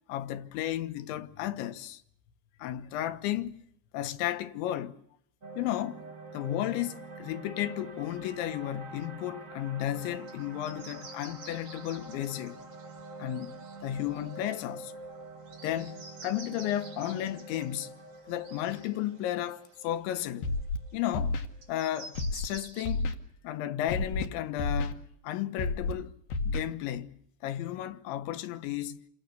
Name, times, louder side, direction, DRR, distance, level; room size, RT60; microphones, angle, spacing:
voice 1, 0.1-2.0 2.6-3.6 3.9-5.0 5.6-6.1 6.3-12.6 13.2-14.9 15.6-17.9 18.3-20.5 20.9-21.4 21.7-23.1 23.4-26.1 26.5-27.2 27.4-29.0, left 13 dB, 80° left, 3.6 m, -33 dB
sound 1, 5.4-21.7, right 2 dB, 25° right, 2.3 m, -46 dB
sound 2, 10.3-10.4 10.6-14.8 15.5-20.1 20.6-20.7 21.6-22.9, right 3 dB, 55° right, 6.9 m, -50 dB
Scratching (performance technique), 20.4-20.8 21.1-21.5 22.1-22.5 22.8-23.1 23.9-24.3 24.6-24.9 25.6-25.9 26.3-26.6, left 3 dB, 60° left, 3.4 m, -30 dB
29.0 x 26.5 x 6.8 m
omnidirectional pair, 5.3 m